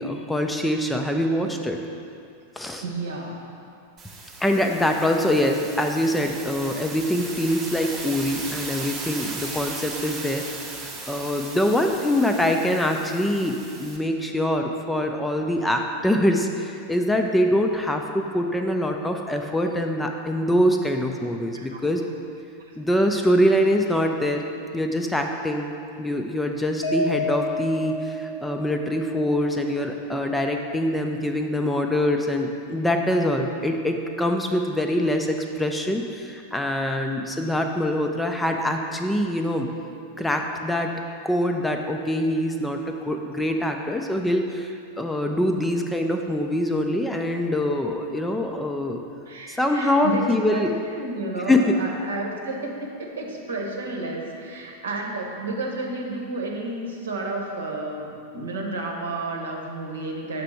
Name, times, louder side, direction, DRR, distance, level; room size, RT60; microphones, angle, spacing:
voice 1, 0.0-1.8 2.6-2.8 4.4-10.5 11.1-22.0 22.8-24.4 24.7-25.7 26.0-39.7 40.2-40.9 41.2-49.0 49.5-50.7 51.5-51.8, left 1 dB, 5° left, 3 dB, 0.4 m, -24 dB
voice 2, 2.8-3.5 21.5-21.8 49.3-50.2 50.5-50.7 50.9-60.4, right 2 dB, 65° right, 0 dB, 0.9 m, -31 dB
sound 1, 4.0-14.0, right 3 dB, 25° right, 0.9 m, -37 dB
Mallet percussion, 26.8-29.1, left 2 dB, 70° left, 0.8 m, -29 dB
6.6 x 3.3 x 6.1 m, 2.4 s
figure-of-eight pair, 90°, 0 cm